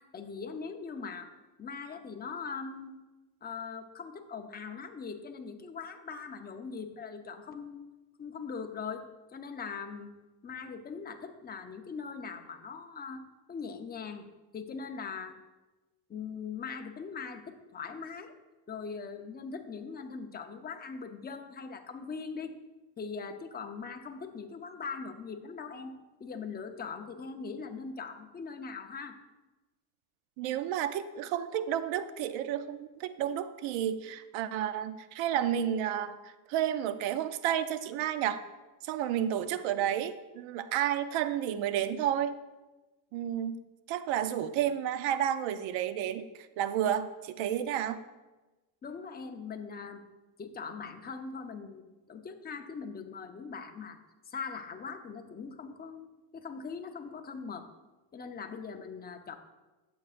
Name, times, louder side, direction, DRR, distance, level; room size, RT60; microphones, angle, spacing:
voice 1, 0.0-1.3 1.6-3.0 3.4-7.8 8.2-10.1 10.4-13.2 13.5-14.2 14.5-15.4 16.1-18.3 18.7-22.6 23.0-25.9 26.2-29.2 48.8-50.0 50.4-54.0 54.3-56.1 56.3-57.7 58.1-59.4, left 5 dB, 20° left, 5 dB, 0.7 m, -41 dB
voice 2, 30.4-38.4 38.8-42.3 43.1-43.6 43.9-48.0, right 10 dB, 80° right, 12 dB, 0.7 m, -31 dB
13.0 x 7.8 x 2.5 m, 1.1 s
cardioid pair, 135°, 46 cm